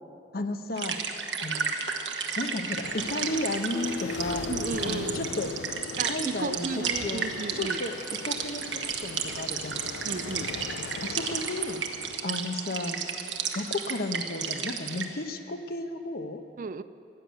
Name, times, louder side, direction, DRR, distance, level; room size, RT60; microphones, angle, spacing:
voice 1, 0.3-1.0 1.4-1.7 2.4-4.4 4.8-5.5 6.0-6.7 6.9-8.0 8.2-9.8 11.0-11.8 12.2-13.0 13.5-16.4, left 2 dB, 55° left, 7 dB, 0.9 m, -33 dB
sound 1, 0.8-15.0, right 6 dB, 90° right, 1.2 m, -33 dB
sound 2, 2.8-12.2, left 5 dB, 85° left, 0.4 m, -40 dB
Keyboard (musical), 3.7-6.6, left 4 dB, 10° left, 0.8 m, -39 dB
voice 2, 4.5-5.3 6.0-7.8 10.0-10.5 16.6-16.8, right 4 dB, 45° right, 13 dB, 0.4 m, -34 dB
16.0 x 9.6 x 8.0 m, 2.7 s
head